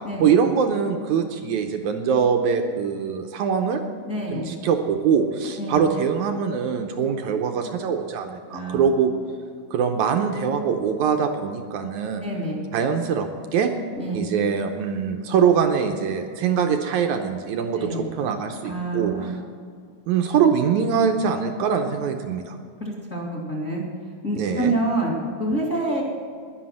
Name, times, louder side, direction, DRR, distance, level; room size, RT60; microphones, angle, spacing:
voice 1, 0.2-3.8 4.3-9.1 9.7-12.2 12.7-13.7 14.1-19.1 20.1-22.6 24.4-24.8, right 7 dB, 75° right, 5 dB, 1.9 m, -23 dB
voice 2, 4.1-4.5 5.6-5.8 8.5-8.9 12.2-12.6 14.0-14.2 17.8-18.1 18.6-19.3 22.8-23.8 24.2-25.1 25.4-26.0, right 1 dB, 25° left, -3 dB, 2.0 m, -27 dB
11.5 x 11.0 x 7.6 m, 2.1 s
omnidirectional pair, 4.0 m